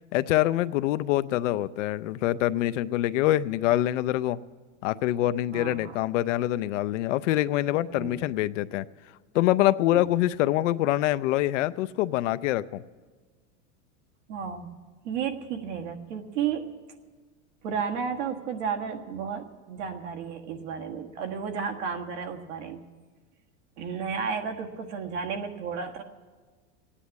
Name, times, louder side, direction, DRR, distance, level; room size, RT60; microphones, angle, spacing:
voice 1, 0.1-4.4 4.8-8.9 9.3-12.8, left 14 dB, 90° left, 14 dB, 0.6 m, -25 dB
voice 2, 5.5-6.0 7.9-8.2 9.9-10.1 14.3-14.7 15.0-16.6 17.6-22.8 23.8-26.0, right 6 dB, 75° right, 4 dB, 1.7 m, -33 dB
15.5 x 10.0 x 8.5 m, 1.4 s
supercardioid pair, 145°, 36 cm